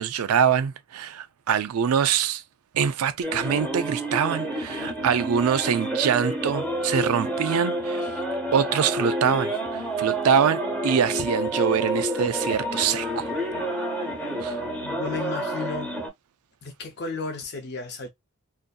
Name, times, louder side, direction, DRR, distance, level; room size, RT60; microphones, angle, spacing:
voice 1, 0.0-2.4 2.7-8.1 8.5-13.3 14.4-14.6, right 7 dB, 85° right, 0.4 m, -24 dB
sound 1, 3.2-16.1, right 1 dB, 5° left, 0.8 m, -29 dB
voice 2, 14.8-15.9 16.6-18.1, left 4 dB, 50° left, 0.6 m, -33 dB
2.6 x 2.6 x 2.3 m
head